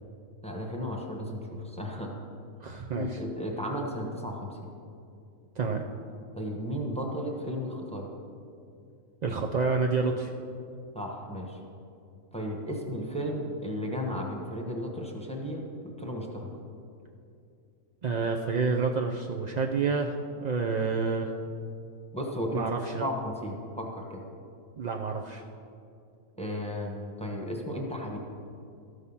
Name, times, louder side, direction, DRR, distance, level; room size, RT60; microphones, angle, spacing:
voice 1, 0.4-2.1 2.9-4.6 6.4-8.1 10.9-11.6 12.3-15.6 16.0-16.5 22.1-22.7 22.9-24.2 26.4-28.2, equal, 5° left, 1 dB, 1.0 m, -34 dB
voice 2, 2.6-3.2 5.6-5.8 9.2-10.3 18.0-21.3 22.5-23.1 24.8-25.4, right 4 dB, 75° right, 1 dB, 0.4 m, -29 dB
13.5 x 6.5 x 5.5 m, 2.5 s
omnidirectional pair, 1.4 m